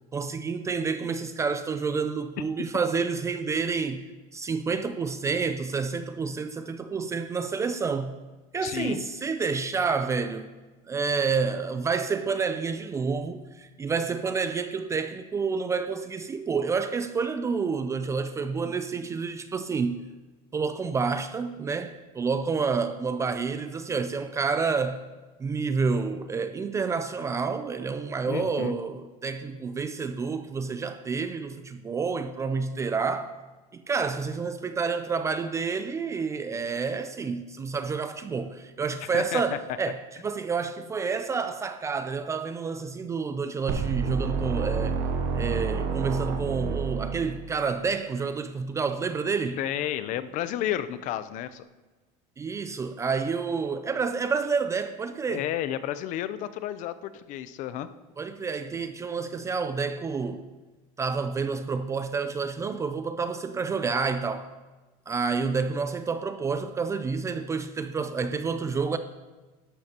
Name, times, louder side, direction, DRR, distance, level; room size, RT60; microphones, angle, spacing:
voice 1, 0.1-4.1 4.3-8.1 8.5-10.5 10.9-20.0 20.5-25.0 25.4-33.3 33.7-45.0 45.3-49.6 52.4-55.4 58.2-60.4 61.0-64.5 65.1-69.0, right 5 dB, 15° right, 0.4 m, -29 dB
voice 2, 8.6-9.0 28.3-28.8 39.1-39.6 49.6-51.6 55.3-57.9, left 12 dB, 45° left, 0.6 m, -31 dB
sound 1, 43.7-47.7, right 5 dB, 55° right, 0.8 m, -29 dB
12.0 x 12.0 x 2.9 m
cardioid pair, 155°, 18 cm